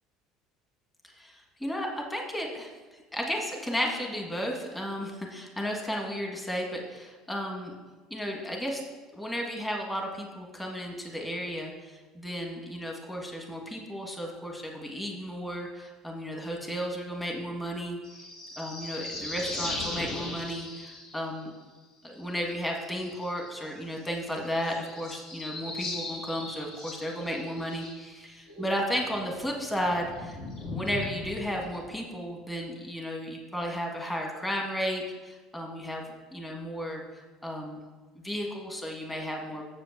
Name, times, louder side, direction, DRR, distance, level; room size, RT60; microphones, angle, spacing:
voice 1, 1.0-7.8 8.1-8.8 9.1-18.3 18.6-21.5 22.0-37.0 37.4-37.8 38.1-39.6, equal, 10° left, 1 dB, 1.5 m, -34 dB
sound 1, 18.0-21.4 22.5-23.7 24.0-24.1 24.3-28.2 28.5-32.0, left 2 dB, 65° left, 2.9 m, -39 dB
7.3 x 5.1 x 7.2 m, 1.3 s
supercardioid pair, 105°, 0 cm